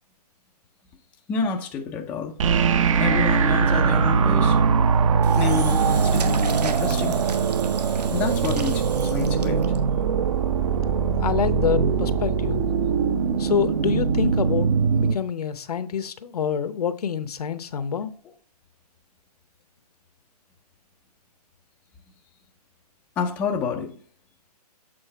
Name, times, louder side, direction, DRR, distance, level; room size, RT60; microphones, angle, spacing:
voice 1, 1.3-2.3 3.0-4.6 5.3-7.2 8.1-9.6 17.7-17.8 23.2-23.9, left 6 dB, 5° left, 0.4 m, -28 dB
sound 1, 2.4-15.2, right 6 dB, 50° right, 0.7 m, -21 dB
Engine / Drill, 5.2-9.8, right 5 dB, 75° right, 1.0 m, -31 dB
voice 2, 11.2-12.6 13.4-18.1, left 7 dB, 65° left, 0.8 m, -26 dB
7.8 x 3.8 x 4.5 m
hypercardioid pair, 150°, 21 cm